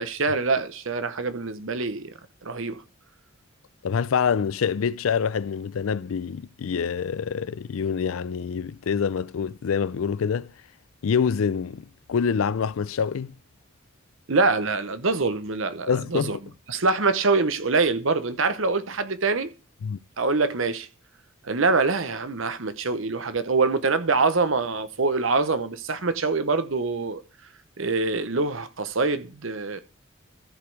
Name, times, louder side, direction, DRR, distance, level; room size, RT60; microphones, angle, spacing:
voice 1, 0.0-2.1 2.4-2.8 14.3-16.4 16.7-19.5 20.2-20.9 21.4-27.2 27.8-29.8, right 3 dB, 70° right, 1.0 m, -24 dB
voice 2, 3.8-10.5 11.0-13.3 15.9-16.4 19.8-20.0, left 6 dB, 80° left, 0.4 m, -26 dB
14.0 x 5.1 x 4.7 m
head